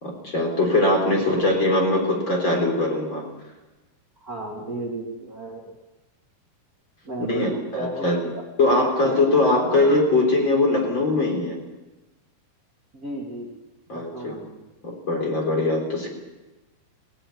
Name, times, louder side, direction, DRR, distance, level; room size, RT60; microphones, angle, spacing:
voice 1, 0.0-3.2 7.2-8.2 8.6-11.6 13.9-14.3 14.8-16.1, left 2 dB, 30° left, 1 dB, 4.0 m, -21 dB
voice 2, 4.2-5.7 7.0-8.4 8.7-9.9 12.9-13.5 13.9-14.6, right 1 dB, 25° right, -2 dB, 2.3 m, -34 dB
18.5 x 17.5 x 9.5 m, 1.1 s
omnidirectional pair, 4.9 m